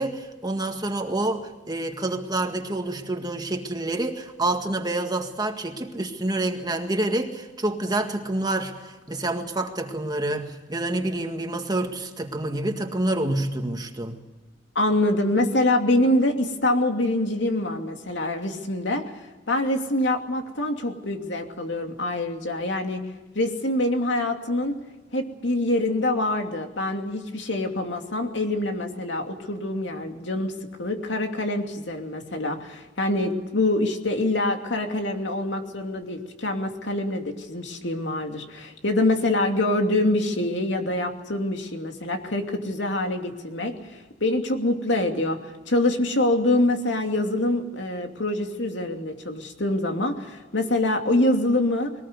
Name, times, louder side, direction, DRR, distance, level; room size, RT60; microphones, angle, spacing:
voice 1, 0.0-14.2, right 2 dB, 20° right, 5 dB, 1.9 m, -28 dB
voice 2, 14.7-19.0 19.5-23.0 23.3-24.7 25.1-30.5 30.8-51.9, left 1 dB, 70° left, 4 dB, 2.8 m, -25 dB
22.0 x 19.0 x 8.2 m, 1.2 s
head